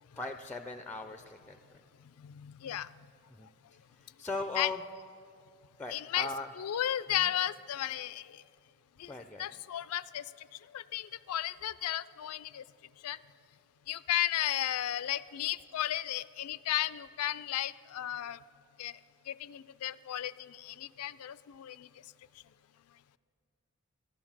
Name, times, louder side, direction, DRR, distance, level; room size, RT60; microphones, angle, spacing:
voice 1, 0.2-1.6 3.4-3.5 3.9-4.8 5.8-6.5 9.1-9.5, left 2 dB, 10° left, 8 dB, 0.4 m, -38 dB
voice 2, 2.2-2.9 4.6-4.7 5.9-6.3 6.6-8.4 9.0-9.1 9.4-10.2 10.7-12.6 13.0-13.2 13.9-18.4 18.8-19.0 19.3-21.9, left 12 dB, 85° left, 18 dB, 0.4 m, -34 dB
14.0 x 11.5 x 7.3 m, 2.4 s
head